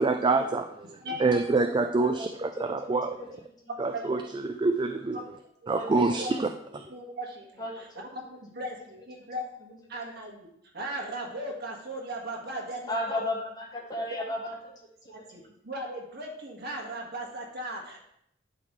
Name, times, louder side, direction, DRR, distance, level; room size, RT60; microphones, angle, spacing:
voice 1, 0.0-0.9 1.2-3.2 3.8-4.2 4.5-5.2 5.7-6.5, right 3 dB, 25° right, 6 dB, 0.4 m, -26 dB
voice 2, 1.0-1.6 3.7-4.0 4.4-4.5 5.6-6.3 6.7-10.5 10.7-13.3 14.1-14.2 15.1-18.0, right 1 dB, 60° right, -1 dB, 1.6 m, -38 dB
voice 3, 5.7-6.2 7.6-7.9 12.9-14.5, left 1 dB, 20° left, -1 dB, 1.4 m, -33 dB
11.5 x 4.0 x 3.1 m, 0.73 s
head